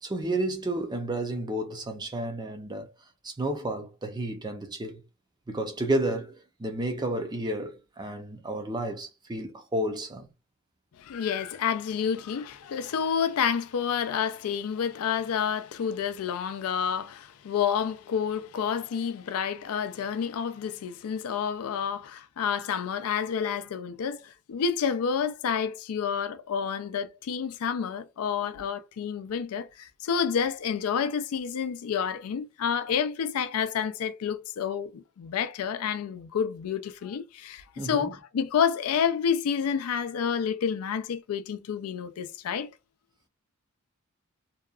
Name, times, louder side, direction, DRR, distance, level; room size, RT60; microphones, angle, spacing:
voice 1, 0.0-2.9 3.2-5.0 5.5-10.3 37.8-38.1, right 1 dB, 20° right, 0.5 m, -31 dB
voice 2, 11.0-42.7, left 7 dB, 90° left, 0.4 m, -29 dB
2.8 x 2.3 x 2.3 m
head